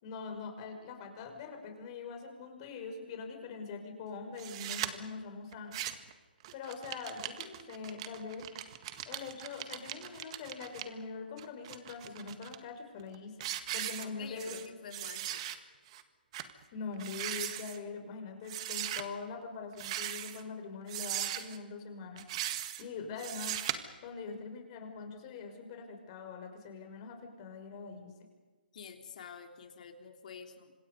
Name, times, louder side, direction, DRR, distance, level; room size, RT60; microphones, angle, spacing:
voice 1, 0.0-5.8 6.5-8.5 9.1-13.5 13.7-14.6 16.7-22.2 22.8-23.6 24.0-28.1, left 5 dB, 35° left, 5 dB, 5.3 m, -43 dB
sound 1, 4.4-4.9 5.5-6.1 6.4-10.8 11.4-12.6 13.0-13.1 13.4-14.7 14.9-15.6 15.9-16.0 16.3-16.5 16.9-17.8 18.5-19.0 19.7-20.4 20.9-21.6 22.2-22.8 23.2-23.7, right 12 dB, 35° right, 1.8 m, -38 dB
voice 2, 14.0-15.4 28.7-30.7, left 6 dB, 50° left, 4 dB, 3.7 m, -48 dB
28.0 x 26.5 x 5.3 m, 1.4 s
figure-of-eight pair, 140°, 5 cm